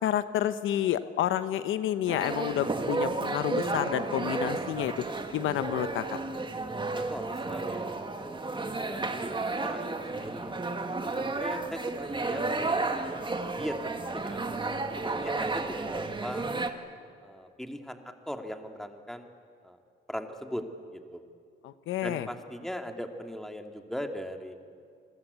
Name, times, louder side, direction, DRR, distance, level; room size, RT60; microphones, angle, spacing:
voice 1, 0.0-5.0 5.3-6.0 21.6-22.3, left 11 dB, 85° left, 12 dB, 1.0 m, -29 dB
sound 1, 2.1-16.7, right 3 dB, 25° right, 2.1 m, -32 dB
voice 2, 6.9-10.6 11.2-13.0 13.5-16.5 17.2-18.0 18.3-19.3 19.6-19.8 20.1-20.6 20.9-21.2 22.0-24.5, equal, ahead, 5 dB, 2.4 m, -39 dB
28.5 x 21.0 x 8.3 m, 2.3 s
cardioid pair, 90°, 20 cm